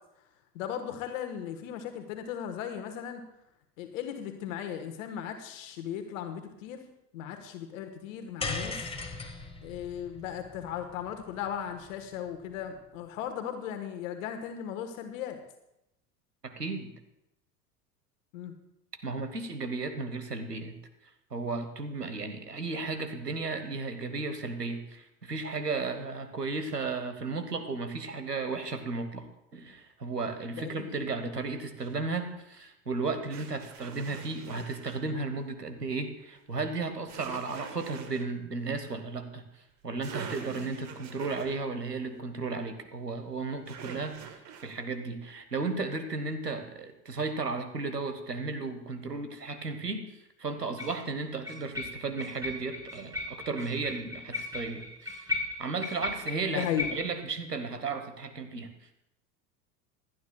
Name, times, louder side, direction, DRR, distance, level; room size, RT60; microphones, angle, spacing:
voice 1, 0.5-3.2 3.8-6.8 7.1-8.9 9.6-15.4 18.3-18.5 30.6-31.1 56.5-56.9, left 9 dB, 55° left, 6 dB, 1.3 m, -37 dB
sound 1, 8.4-12.8, left 3 dB, 10° left, 1.4 m, -39 dB
voice 2, 16.4-16.9 19.0-20.8 21.3-29.3 29.5-39.4 39.8-50.1 50.4-55.3 55.6-58.7, right 3 dB, 90° right, 8 dB, 1.2 m, -34 dB
sound 2, 31.8-31.9 33.3-35.0 37.1-38.3 39.7-39.8 40.0-41.6 43.7-44.8, right 7 dB, 35° right, 1.5 m, -44 dB
sound 3, 48.6-48.7 50.8-51.0 51.4-57.2, left 3 dB, 5° right, 3.8 m, -37 dB
26.5 x 9.4 x 2.3 m, 0.84 s
figure-of-eight pair, 80°, 47 cm